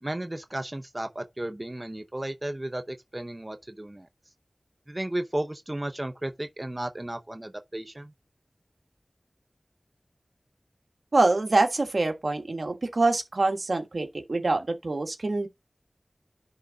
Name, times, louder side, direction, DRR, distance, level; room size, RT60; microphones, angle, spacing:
voice 1, 0.0-4.1 4.9-8.1, right 1 dB, 30° right, 0.7 m, -34 dB
voice 2, 11.1-15.5, right 2 dB, 80° right, 1.4 m, -25 dB
10.5 x 3.6 x 4.0 m
wide cardioid pair, 45°, 0 cm